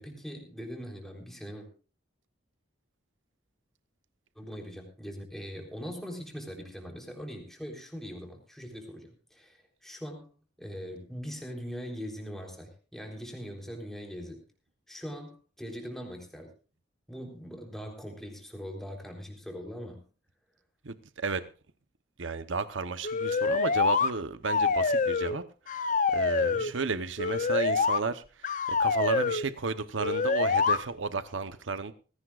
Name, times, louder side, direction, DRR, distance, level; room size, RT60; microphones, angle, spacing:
voice 1, 0.0-1.7 4.4-10.3 10.6-14.4 14.9-16.5 17.1-20.0 26.4-26.8, equal, ahead, 3.7 m, -41 dB
voice 2, 20.8-21.4 22.2-25.4 26.1-28.2 28.8-31.9, right 4 dB, 80° right, 0.9 m, -33 dB
sound 1, 23.0-24.1 24.4-25.4 25.7-26.7 27.2-28.0 28.4-29.4 30.0-30.8, left 4 dB, 40° left, 0.7 m, -26 dB
19.5 x 16.5 x 2.5 m
head